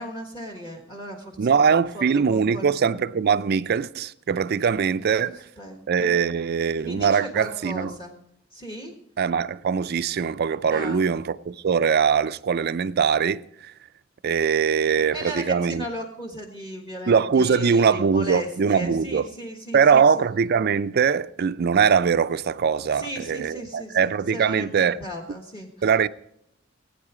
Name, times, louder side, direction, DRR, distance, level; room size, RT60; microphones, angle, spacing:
voice 1, 0.0-3.0 5.0-6.2 6.8-8.2 8.5-8.9 10.7-11.1 15.1-20.1 22.9-25.7, equal, 25° left, 1.4 m, -36 dB
voice 2, 1.4-5.4 5.9-7.9 9.2-13.7 14.2-15.8 17.1-19.3 19.7-25.0 25.8-26.1, right 6 dB, 50° right, 0.4 m, -22 dB
19.0 x 9.0 x 4.9 m
head